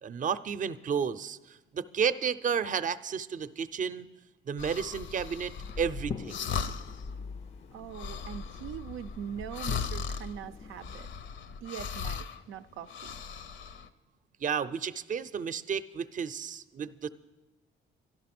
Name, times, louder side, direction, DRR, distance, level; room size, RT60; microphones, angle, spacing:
voice 1, 0.0-4.1 4.5-6.4 14.4-17.1, right 7 dB, 40° right, 14 dB, 0.6 m, -32 dB
sound 1, 4.6-7.1 7.4-7.5 7.8-12.4 12.8-13.9, left 6 dB, 70° left, 0.7 m, -38 dB
sound 2, 5.6-11.0, left 5 dB, 30° left, 0.4 m, -44 dB
voice 2, 7.7-11.0 11.6-13.2, right 9 dB, 90° right, 9 dB, 0.4 m, -42 dB
12.0 x 12.0 x 6.0 m, 1.1 s
cardioid pair, 90°, 20 cm